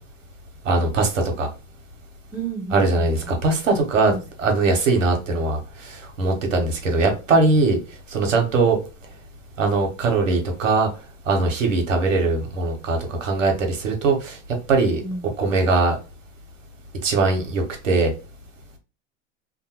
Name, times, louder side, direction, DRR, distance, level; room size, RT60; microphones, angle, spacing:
voice 1, 0.6-1.5 2.7-4.1 4.4-7.8 8.1-8.8 9.6-10.9 11.3-14.4 14.7-15.0 15.4-16.0 17.0-18.1, right 3 dB, 85° right, 1.0 m, -21 dB
voice 2, 2.3-3.3 4.1-4.2 15.0-15.3, right 3 dB, 10° left, 0.9 m, -33 dB
2.6 x 2.1 x 2.9 m
hypercardioid pair, 100°, 38 cm